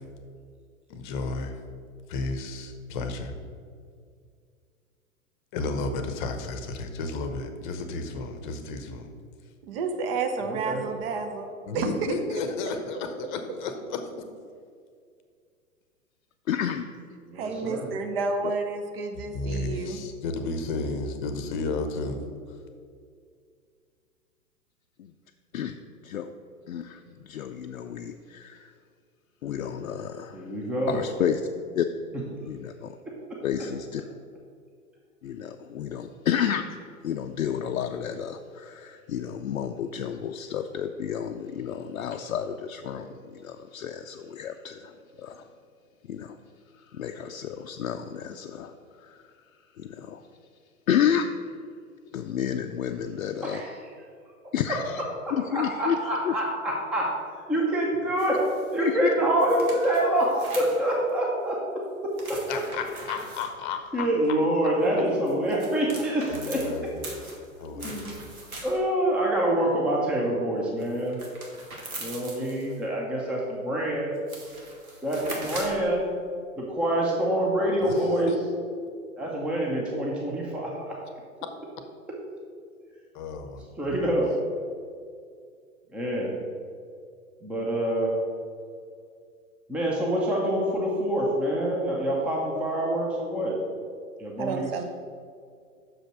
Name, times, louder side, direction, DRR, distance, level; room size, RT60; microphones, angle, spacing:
voice 1, 0.9-1.6 2.1-3.3 5.5-9.1 11.7-14.1 19.2-22.2 62.5-64.4 66.3-67.2 67.6-67.9 77.8-78.4 83.1-84.0, left 3 dB, 35° left, 7 dB, 0.8 m, -33 dB
voice 2, 9.6-11.9 17.3-20.0 94.4-94.8, right 4 dB, 40° right, 5 dB, 0.9 m, -30 dB
voice 3, 10.4-10.8 17.3-17.9 30.3-31.0 53.4-53.8 55.2-57.1 57.5-61.6 62.0-62.4 63.9-66.7 67.7-68.1 68.6-71.2 72.0-74.1 75.0-76.1 76.6-78.3 79.2-81.0 83.8-84.3 85.9-86.4 87.4-88.1 89.7-93.6 94.2-94.8, right 1 dB, 5° right, -3 dB, 0.6 m, -26 dB
voice 4, 16.5-16.9 25.0-25.1 25.5-25.8 26.0-26.3 26.7-28.7 29.4-30.5 30.9-31.4 31.8-31.9 32.4-32.9 33.4-34.0 35.2-36.7 37.0-45.5 46.1-46.4 46.9-49.2 49.8-50.2 50.9-51.3 52.1-53.6 54.5-55.0 55.3-56.0 56.2-56.3 58.8-59.1, left 9 dB, 70° left, 5 dB, 0.5 m, -30 dB
sound 1, 58.2-58.8 59.4-61.1 62.1-63.5 65.1-69.0 70.8-72.8 73.8-73.9 74.1-75.9, right 2 dB, 75° right, 1.8 m, -41 dB
6.2 x 5.1 x 6.1 m, 2.2 s
figure-of-eight pair, 110°, 43 cm